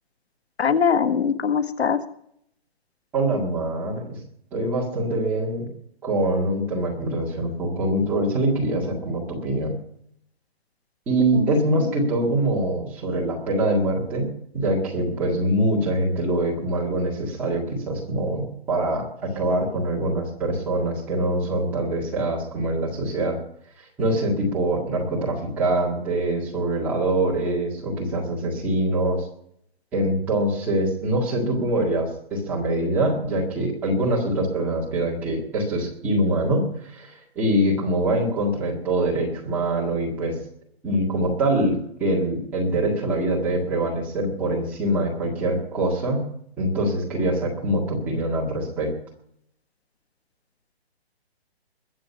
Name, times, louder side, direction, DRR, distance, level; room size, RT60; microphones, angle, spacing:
voice 1, 0.6-2.0 11.3-11.5, left 6 dB, 85° left, 10 dB, 1.6 m, -22 dB
voice 2, 3.1-4.2 4.5-5.7 6.0-9.8 11.1-23.4 23.8-29.3 29.9-40.4 40.8-46.3 46.6-49.0, right 1 dB, 5° right, -5 dB, 1.7 m, -24 dB
21.5 x 7.7 x 5.4 m, 0.70 s
hypercardioid pair, 180°, 31 cm